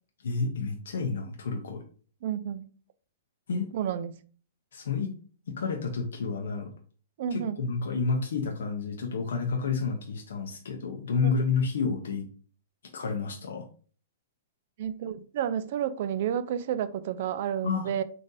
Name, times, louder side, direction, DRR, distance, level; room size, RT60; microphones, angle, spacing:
voice 1, 0.2-1.8 3.5-3.7 4.7-5.1 5.5-6.7 7.3-12.3 12.9-13.6 17.6-18.0, left 5 dB, 85° left, 0.6 m, -30 dB
voice 2, 2.2-2.7 3.7-4.2 7.2-7.6 11.2-11.3 14.8-18.0, right 9 dB, 50° right, 0.3 m, -30 dB
3.8 x 2.5 x 2.6 m
hypercardioid pair, 155°, 0 cm